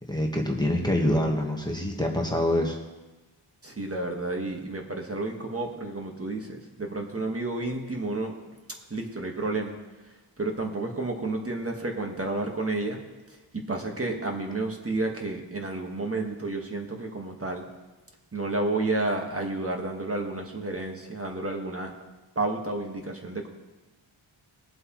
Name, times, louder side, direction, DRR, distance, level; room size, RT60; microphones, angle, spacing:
voice 1, 0.1-2.8, left 1 dB, 10° left, 0 dB, 1.3 m, -25 dB
voice 2, 3.6-8.3 8.9-9.7 10.4-13.0 13.3-17.6 18.3-21.9 22.3-23.5, right 2 dB, 30° right, 1 dB, 1.5 m, -31 dB
21.0 x 7.7 x 3.1 m, 1.1 s
wide cardioid pair, 110°, 49 cm